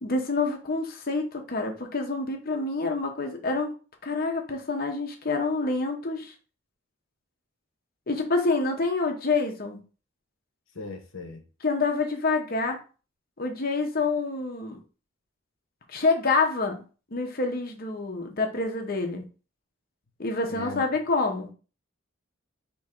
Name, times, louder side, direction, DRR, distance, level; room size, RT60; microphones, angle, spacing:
voice 1, 0.0-3.7 4.0-6.3 8.1-9.8 11.6-12.8 13.4-14.8 15.9-16.8 17.1-19.2 20.2-21.5, left 3 dB, 45° left, 3 dB, 0.8 m, -27 dB
voice 2, 10.7-11.4 20.5-20.8, left 2 dB, 75° left, 4 dB, 0.9 m, -38 dB
3.5 x 3.0 x 4.3 m, 0.35 s
head